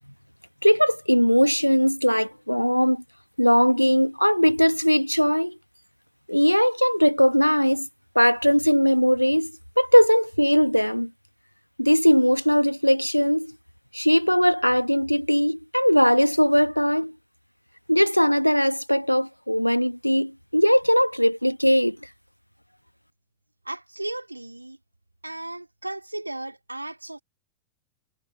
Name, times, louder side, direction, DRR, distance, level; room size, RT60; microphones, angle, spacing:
voice 1, 0.6-3.0 3.4-5.6 6.3-7.9 8.1-11.1 11.8-13.6 13.9-17.1 17.9-22.1, equal, 90° left, 1.3 m, -20 dB
voice 2, 23.6-24.8 25.2-27.2, right 1 dB, 85° right, 2.4 m, -35 dB
figure-of-eight pair, 90°, 0 cm